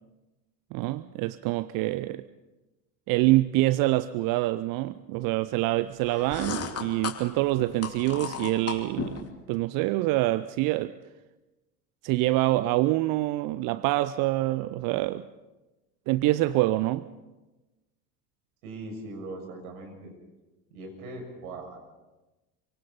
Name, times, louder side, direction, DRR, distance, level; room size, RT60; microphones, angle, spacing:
voice 1, 0.7-2.2 3.1-10.9 12.0-15.3 16.1-17.1, right 18 dB, 45° right, 0.7 m, -26 dB
sound 1, 6.0-9.3, left 7 dB, 30° left, 2.9 m, -36 dB
voice 2, 18.6-20.1 20.7-21.8, right 2 dB, 65° right, 6.8 m, -40 dB
28.0 x 25.0 x 4.2 m
figure-of-eight pair, 70°, 47 cm